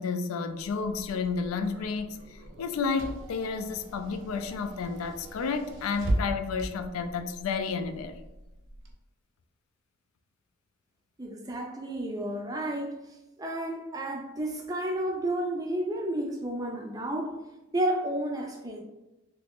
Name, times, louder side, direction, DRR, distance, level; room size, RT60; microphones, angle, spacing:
voice 1, 0.0-8.2, left 5 dB, 80° left, 0.3 m, -31 dB
Car / Engine, 0.6-8.9, right 1 dB, 60° right, 0.6 m, -38 dB
voice 2, 11.2-13.0 13.4-17.4 17.7-18.8, right 1 dB, 15° right, 0.4 m, -31 dB
2.9 x 2.5 x 3.5 m
head